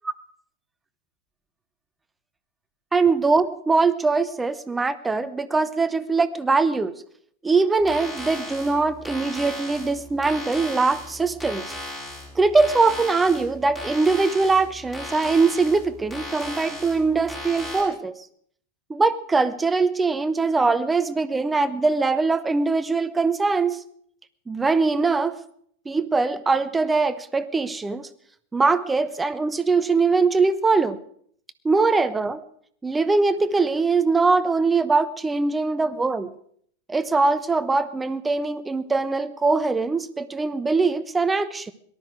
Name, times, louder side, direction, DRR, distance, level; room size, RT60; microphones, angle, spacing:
voice 1, 2.9-6.9 7.4-11.7 12.3-18.2 18.9-23.8 24.5-25.4 25.9-28.1 28.5-31.0 31.6-32.4 32.8-36.3 36.9-41.7, right 4 dB, 10° right, 13 dB, 0.9 m, -22 dB
sound 1, 7.8-17.8, left 1 dB, 15° left, 6.9 m, -37 dB
18.5 x 12.5 x 4.8 m, 0.64 s
figure-of-eight pair, 90°, 0 cm